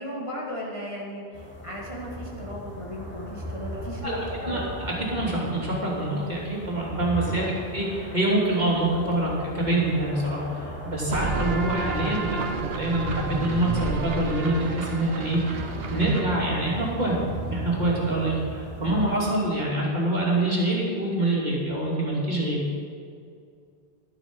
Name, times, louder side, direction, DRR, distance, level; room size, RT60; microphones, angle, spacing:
voice 1, 0.0-4.7 7.3-7.6, equal, 30° left, -5 dB, 1.8 m, -36 dB
sound 1, 1.3-19.5, equal, 10° left, 2.6 m, -38 dB
voice 2, 4.0-15.4 15.9-17.1 17.5-22.8, right 1 dB, 40° right, -5 dB, 2.9 m, -26 dB
sound 2, 11.1-18.5, right 4 dB, 60° right, 1.1 m, -32 dB
12.0 x 9.1 x 6.1 m, 2.3 s
omnidirectional pair, 1.1 m